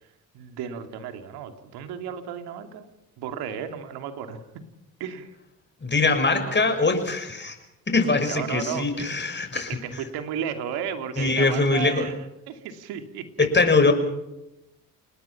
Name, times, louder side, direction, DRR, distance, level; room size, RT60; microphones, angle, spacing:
voice 1, 0.3-2.9 3.2-4.6 5.0-5.3 6.4-6.5 8.3-9.2 9.5-13.5, right 8 dB, 80° right, 7 dB, 2.7 m, -34 dB
voice 2, 5.8-7.6 7.9-9.8 11.2-12.1 13.4-13.9, left 3 dB, 30° left, 6 dB, 6.2 m, -22 dB
29.0 x 20.0 x 5.9 m, 0.92 s
supercardioid pair, 65°, 38 cm